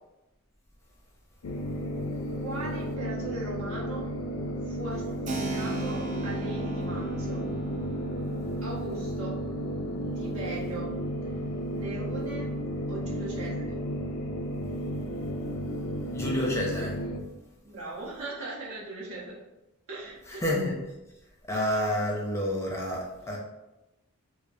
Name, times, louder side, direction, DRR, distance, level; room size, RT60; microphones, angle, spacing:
sound 1, 1.4-17.2, equal, 80° left, 0.5 m, -33 dB
voice 1, 2.4-4.1 4.6-7.4 8.6-9.4 10.1-10.9 11.7-12.5 12.9-13.8 17.6-19.4 19.9-20.4, right 2 dB, 75° right, -5 dB, 1.1 m, -39 dB
Keyboard (musical), 5.3-13.6, right 2 dB, 35° right, 0.4 m, -39 dB
voice 2, 16.1-17.0 20.4-20.7 21.5-23.4, left 1 dB, 10° left, -2 dB, 0.6 m, -29 dB
4.9 x 2.0 x 2.7 m, 1.0 s
head